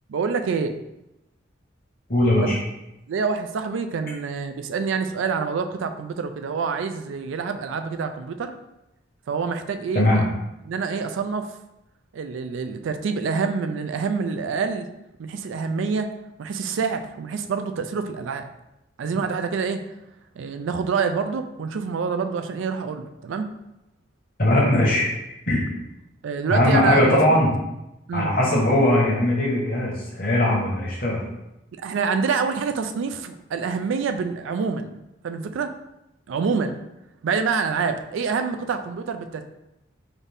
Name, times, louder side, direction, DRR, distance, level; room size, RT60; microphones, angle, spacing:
voice 1, 0.1-0.7 2.4-2.5 3.1-8.5 9.3-10.3 10.7-11.5 12.1-14.9 15.2-16.1 16.4-18.4 19.0-19.8 20.4-23.5 26.2-27.4 28.1-28.3 31.8-35.0 35.2-35.7 36.3-36.8 37.2-39.5, right 5 dB, 80° right, 8 dB, 0.3 m, -26 dB
voice 2, 2.1-2.6 9.9-10.3 24.4-25.1 25.5-25.6 26.5-27.5 28.1-31.2, left 1 dB, 45° left, -3 dB, 1.0 m, -19 dB
4.0 x 2.6 x 3.4 m, 0.89 s
head